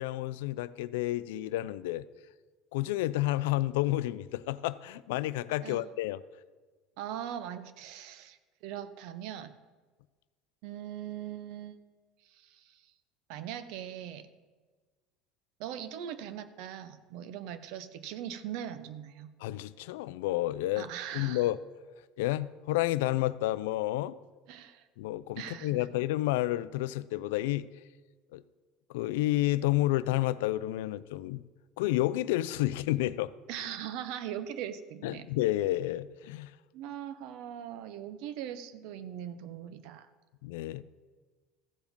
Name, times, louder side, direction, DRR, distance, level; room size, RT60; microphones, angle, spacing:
voice 1, 0.0-2.0 2.7-6.2 19.4-20.9 21.1-21.6 22.2-24.2 25.0-27.7 28.3-28.4 28.9-31.4 31.8-33.3 35.0-36.5 40.4-40.8, left 16 dB, 90° left, 0.3 m, -30 dB
voice 2, 7.0-8.4 8.6-9.5 10.6-11.8 12.3-12.8 13.3-14.3 15.6-19.3 20.8-21.5 24.5-24.8 25.4-25.8 33.5-35.3 36.7-40.1, right 10 dB, 70° right, 0.7 m, -40 dB
14.5 x 5.0 x 5.2 m
supercardioid pair, 115°, 0 cm